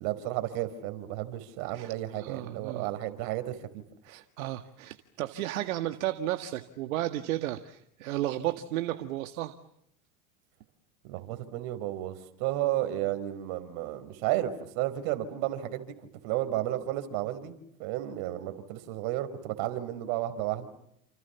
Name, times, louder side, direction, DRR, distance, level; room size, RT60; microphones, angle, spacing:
voice 1, 0.0-3.6 4.1-4.2 11.0-16.0 16.2-17.5 17.8-20.7, right 14 dB, 65° right, 9 dB, 5.0 m, -32 dB
voice 2, 1.7-2.9 4.0-9.6, right 14 dB, 85° right, 8 dB, 2.0 m, -33 dB
30.0 x 28.0 x 7.1 m, 0.74 s
supercardioid pair, 100°, 41 cm